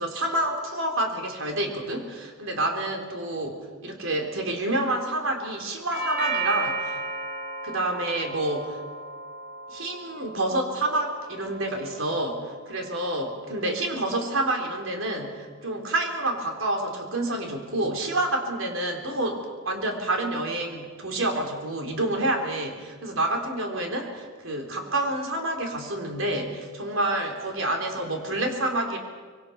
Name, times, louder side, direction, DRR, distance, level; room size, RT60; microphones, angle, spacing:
voice 1, 0.0-7.0 7.6-8.8 9.7-29.0, right 1 dB, 80° right, 2 dB, 4.0 m, -28 dB
Doorbell, 5.9-14.0, right 3 dB, 55° right, 4.5 m, -35 dB
25.0 x 23.0 x 6.0 m, 1.5 s
head